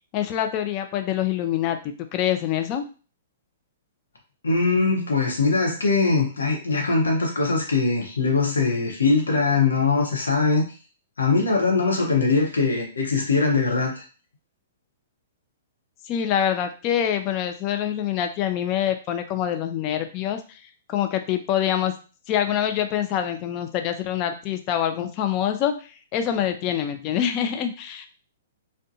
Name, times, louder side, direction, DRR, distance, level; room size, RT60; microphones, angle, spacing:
voice 1, 0.1-2.8 16.1-20.6 20.9-21.9 22.3-28.1, left 10 dB, 35° left, 7 dB, 0.4 m, -25 dB
voice 2, 4.4-10.7 11.2-14.0, left 4 dB, 85° left, 0 dB, 0.8 m, -21 dB
2.5 x 2.2 x 2.7 m, 0.36 s
hypercardioid pair, 125°, 0 cm